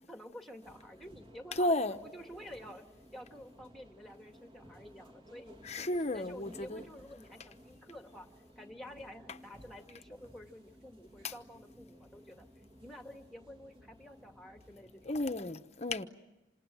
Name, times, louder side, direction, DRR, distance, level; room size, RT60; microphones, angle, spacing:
voice 1, 0.1-1.8 2.0-2.9 3.1-8.3 8.6-12.5 12.8-15.2, equal, ahead, 2.1 m, -50 dB
sound 1, 0.6-15.5, equal, 25° right, 2.2 m, -57 dB
voice 2, 1.6-2.0 5.6-6.8 11.2-11.3 15.1-16.1, left 1 dB, 35° left, 1.0 m, -33 dB
28.0 x 27.0 x 7.7 m
head